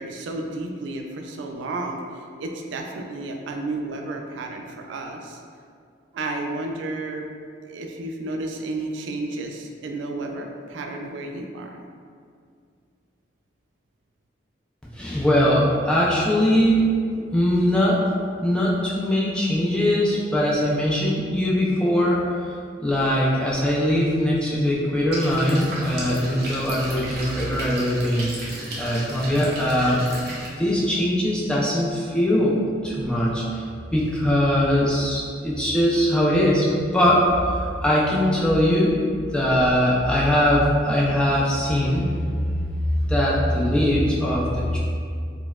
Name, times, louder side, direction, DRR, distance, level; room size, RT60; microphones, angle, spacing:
voice 1, 0.0-5.4 6.1-7.3 7.7-11.8, right 2 dB, 80° right, 2 dB, 0.3 m, -32 dB
voice 2, 14.9-16.8 17.3-18.0 18.4-22.5 22.8-28.3 28.8-30.0 30.6-32.6 32.8-33.6 33.9-38.9 39.3-42.1 42.3-44.8, equal, 5° left, -5 dB, 0.3 m, -21 dB
sound 1, 25.1-30.5, right 1 dB, 55° right, 0.7 m, -34 dB
4.1 x 2.0 x 2.3 m, 2.2 s
head